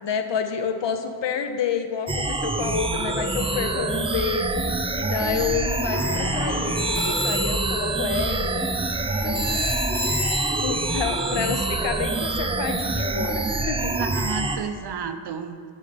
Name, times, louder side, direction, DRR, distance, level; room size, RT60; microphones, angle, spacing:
voice 1, 0.0-4.6 5.0-8.7 9.2-9.7 10.6-13.9, left 6 dB, 70° left, 7 dB, 0.7 m, -29 dB
sound 1, 2.1-14.6, right 2 dB, 15° right, 0.3 m, -26 dB
sound 2, 5.9-7.9, left 1 dB, 40° left, 1.5 m, -35 dB
sound 3, 6.8-12.2, equal, 10° left, 1.1 m, -31 dB
voice 2, 13.7-15.7, right 6 dB, 60° right, 9 dB, 0.6 m, -32 dB
5.4 x 5.3 x 5.0 m, 2.1 s
cardioid pair, 65°, 46 cm